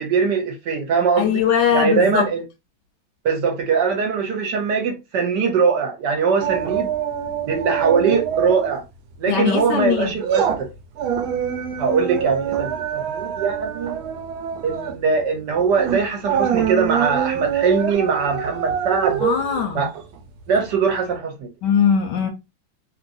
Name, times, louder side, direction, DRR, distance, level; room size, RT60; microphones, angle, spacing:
voice 1, 0.0-1.4 1.7-2.4 3.2-6.9 7.5-8.8 9.2-10.7 11.8-14.0 14.6-19.2 19.7-19.9 20.5-21.5, right 5 dB, 65° right, 1.3 m, -21 dB
voice 2, 1.2-2.3 9.3-10.1 19.2-19.9 21.6-22.3, left 7 dB, 75° left, 1.1 m, -20 dB
sound 1, 6.4-8.8 9.1-9.3 9.8-20.7 21.1-21.2, right 9 dB, 85° right, 1.4 m, -25 dB
3.0 x 3.0 x 2.6 m
omnidirectional pair, 2.2 m